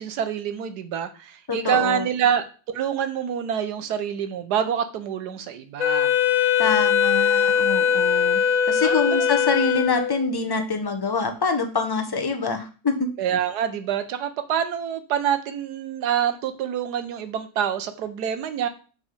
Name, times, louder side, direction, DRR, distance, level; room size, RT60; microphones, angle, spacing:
voice 1, 0.0-6.1 8.8-9.3 13.2-18.7, right 9 dB, 85° right, 10 dB, 1.4 m, -26 dB
voice 2, 1.5-2.1 6.6-8.4 8.7-12.9, left 4 dB, 20° left, 5 dB, 0.6 m, -25 dB
Wind instrument woodwind instrument, 5.8-10.4, left 7 dB, 60° left, 1.2 m, -21 dB
7.5 x 4.1 x 4.9 m, 0.36 s
omnidirectional pair, 1.7 m